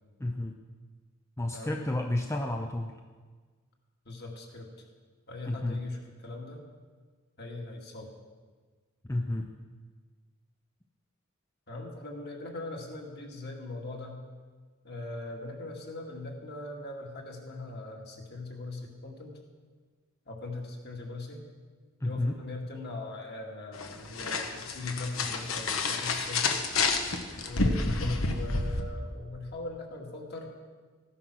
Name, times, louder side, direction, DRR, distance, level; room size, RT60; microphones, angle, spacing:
voice 1, 0.2-0.5 1.4-2.9 5.5-5.8 9.1-9.5 22.0-22.4 27.9-28.2, left 1 dB, 15° left, 3 dB, 0.6 m, -31 dB
voice 2, 4.1-4.7 5.3-6.6 7.4-8.1 11.7-14.2 14.8-19.3 20.3-21.4 22.0-26.6 27.4-27.8 28.2-30.5, left 2 dB, 50° left, 0 dB, 2.3 m, -40 dB
sound 1, 23.7-28.8, left 3 dB, 80° left, 1.2 m, -29 dB
15.0 x 9.8 x 6.2 m, 1.5 s
head